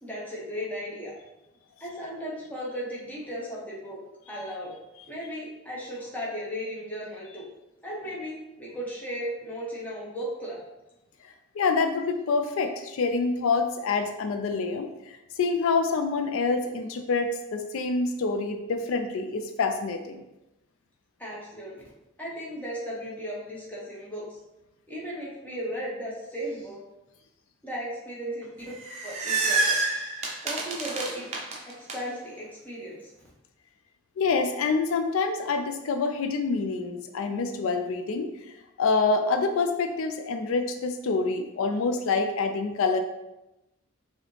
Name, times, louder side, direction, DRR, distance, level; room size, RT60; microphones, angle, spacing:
voice 1, 0.0-1.1 1.8-4.0 4.3-4.7 5.1-7.5 7.8-10.6 21.2-21.8 22.2-24.4 24.9-26.8 27.6-28.7 29.0-29.8 30.4-31.3 31.6-33.1, equal, 10° left, -6 dB, 0.9 m, -36 dB
voice 2, 11.5-20.2 34.2-38.3 38.8-43.0, left 4 dB, 80° left, 7 dB, 0.4 m, -26 dB
sound 1, 28.6-31.9, right 3 dB, 30° right, 0.6 m, -28 dB
4.8 x 2.7 x 3.2 m, 0.95 s
head